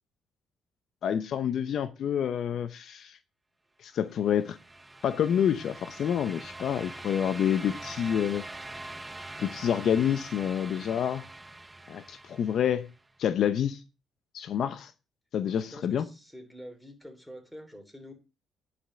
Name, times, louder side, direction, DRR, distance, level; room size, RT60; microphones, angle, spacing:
voice 1, 1.0-3.2 3.8-4.6 5.0-8.4 9.4-11.2 11.9-12.9 13.2-13.8 14.3-14.9 15.3-16.1, left 9 dB, 65° left, 0.7 m, -28 dB
sound 1, 4.1-13.0, right 2 dB, 15° right, 0.8 m, -44 dB
voice 2, 15.4-18.1, equal, 5° left, 3.3 m, -47 dB
10.0 x 5.2 x 7.8 m
cardioid pair, 95°, 0 cm